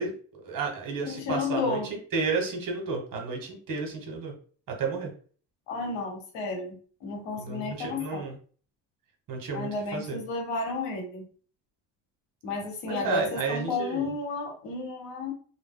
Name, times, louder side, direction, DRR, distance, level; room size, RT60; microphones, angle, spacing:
voice 1, 0.0-4.3 4.7-5.1 7.4-8.4 9.3-10.2 12.9-14.0, right 4 dB, 50° right, 2 dB, 1.2 m, -32 dB
voice 2, 1.0-1.9 5.7-8.2 9.5-11.3 12.4-15.3, left 3 dB, 85° left, 2 dB, 1.2 m, -32 dB
2.5 x 2.1 x 3.7 m, 0.43 s
supercardioid pair, 80°, 42 cm